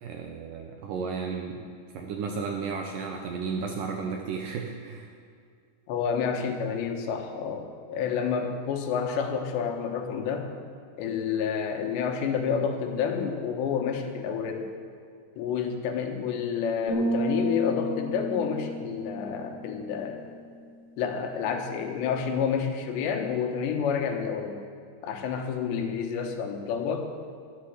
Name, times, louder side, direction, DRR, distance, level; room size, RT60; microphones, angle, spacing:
voice 1, 0.0-1.7 1.9-5.1, right 5 dB, 75° right, 2 dB, 2.0 m, -33 dB
voice 2, 5.9-10.5 11.0-14.7 15.4-20.2 21.0-24.6 25.0-27.1, left 6 dB, 85° left, 4 dB, 3.5 m, -29 dB
sound 1, 16.9-20.6, equal, 15° left, 3.6 m, -32 dB
13.5 x 11.5 x 8.0 m, 2.2 s
omnidirectional pair, 4.9 m